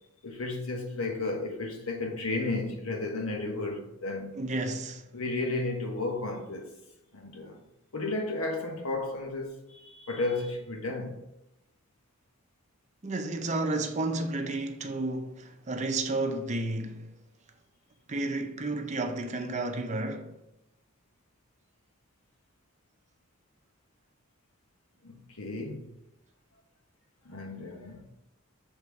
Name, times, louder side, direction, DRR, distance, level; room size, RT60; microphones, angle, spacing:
voice 1, 0.2-4.3 5.1-6.7 7.1-7.6 7.9-11.2 25.0-25.9 27.2-28.0, left 2 dB, 80° left, 1.2 m, -33 dB
voice 2, 4.4-5.1 13.0-17.1 18.1-20.3, right 2 dB, 35° right, 0.6 m, -32 dB
6.8 x 3.6 x 4.7 m
head